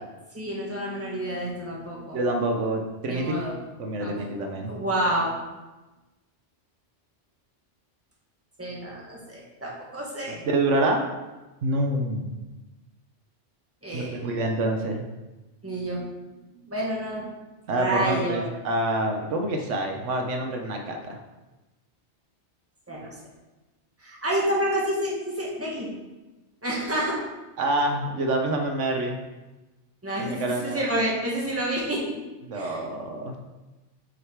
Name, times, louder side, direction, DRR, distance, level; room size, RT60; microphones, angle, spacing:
voice 1, 0.3-2.2 3.1-3.6 3.8-4.3 4.6-5.4 8.6-10.4 13.8-14.3 15.6-16.0 16.4-17.3 17.8-18.5 22.9-23.1 24.0-25.9 26.6-27.2 30.0-32.0 32.5-32.8, right 1 dB, 10° right, -5 dB, 1.7 m, -29 dB
voice 2, 2.1-3.4 3.8-4.7 10.3-11.1 11.6-12.3 13.9-15.0 17.7-21.2 27.6-29.2 30.2-30.8 32.4-33.3, right 1 dB, 85° right, 3 dB, 1.2 m, -27 dB
6.4 x 5.7 x 4.6 m, 1.1 s
omnidirectional pair, 1.2 m